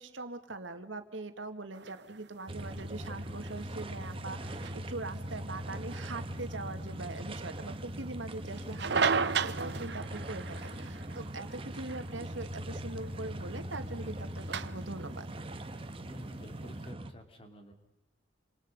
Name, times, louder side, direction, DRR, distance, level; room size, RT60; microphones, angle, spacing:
voice 1, 0.0-9.2 9.4-15.3, right 2 dB, 80° right, 8 dB, 2.0 m, -42 dB
sound 1, 1.7-16.9, right 5 dB, 60° right, 0.9 m, -38 dB
sound 2, 2.5-17.1, right 1 dB, 30° right, 1.3 m, -41 dB
voice 2, 16.0-17.7, left 1 dB, 30° left, 5 dB, 3.3 m, -50 dB
29.5 x 27.0 x 5.4 m, 0.84 s
head